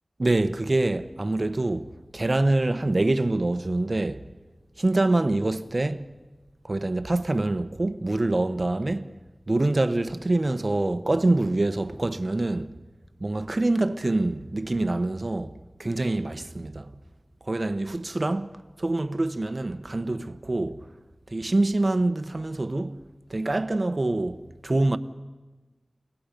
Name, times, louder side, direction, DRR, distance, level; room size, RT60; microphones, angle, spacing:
voice 1, 0.2-4.3 4.8-6.1 6.6-9.1 9.5-12.7 13.2-16.9 17.4-20.9 21.3-23.0 23.3-25.0, right 2 dB, 50° right, 0.9 m, -25 dB
29.5 x 18.5 x 5.2 m
wide cardioid pair, 50°, 0 cm